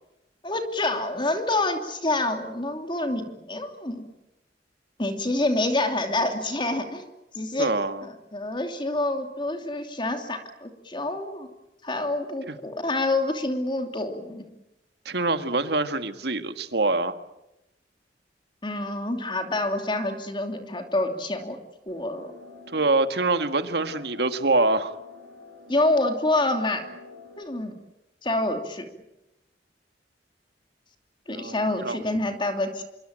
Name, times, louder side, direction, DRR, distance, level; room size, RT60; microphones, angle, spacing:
voice 1, 0.4-4.0 5.0-7.1 7.3-7.7 8.0-11.5 11.8-14.4 18.6-21.6 21.9-22.3 25.7-26.9 27.4-27.8 28.2-28.9 31.3-32.8, left 2 dB, 25° left, 5 dB, 2.9 m, -27 dB
voice 2, 7.6-8.0 12.5-12.6 15.1-17.1 22.7-25.0 31.3-32.0, right 2 dB, 65° right, 10 dB, 1.8 m, -25 dB
sound 1, 21.9-27.4, left 2 dB, 85° right, 6.6 m, -47 dB
27.0 x 23.0 x 9.0 m, 0.90 s
head